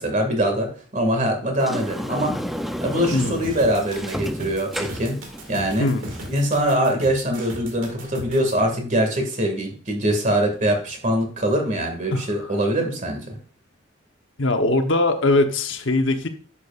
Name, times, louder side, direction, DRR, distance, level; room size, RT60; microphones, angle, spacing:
voice 1, 0.0-2.3 2.8-5.2 5.5-5.9 6.3-13.4, right 1 dB, 40° right, 3 dB, 2.1 m, -23 dB
Sliding door, 1.6-6.7, equal, ahead, 0.4 m, -32 dB
sound 1, 3.4-8.5, right 1 dB, 75° right, 2.0 m, -37 dB
voice 2, 12.1-12.5 14.4-16.3, left 2 dB, 65° left, 6 dB, 1.0 m, -21 dB
11.0 x 7.3 x 2.5 m, 0.40 s
head